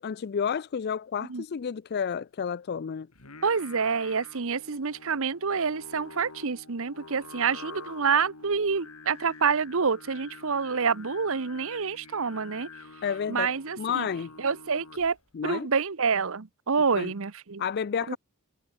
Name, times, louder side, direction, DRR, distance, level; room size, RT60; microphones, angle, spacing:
voice 1, 0.0-3.1 13.0-14.3 15.3-15.7 17.0-17.1 17.6-18.2, left 7 dB, 45° left, 0.4 m, -31 dB
Singing, 3.1-15.3, left 4 dB, 80° left, 3.1 m, -48 dB
voice 2, 3.4-12.7 13.3-14.1 14.4-15.2 15.4-17.6 18.1-18.2, right 5 dB, 65° right, 0.9 m, -27 dB
head